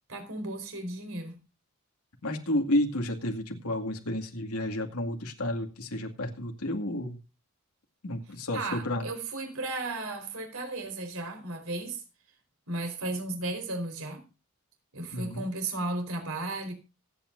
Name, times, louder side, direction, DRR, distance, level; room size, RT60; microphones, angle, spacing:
voice 1, 0.1-1.4 8.5-12.0 12.7-14.2 14.9-16.7, right 2 dB, 65° right, 4.5 m, -34 dB
voice 2, 2.2-7.2 8.0-9.1 15.1-15.4, left 1 dB, 80° left, 2.3 m, -31 dB
25.5 x 8.9 x 2.6 m
head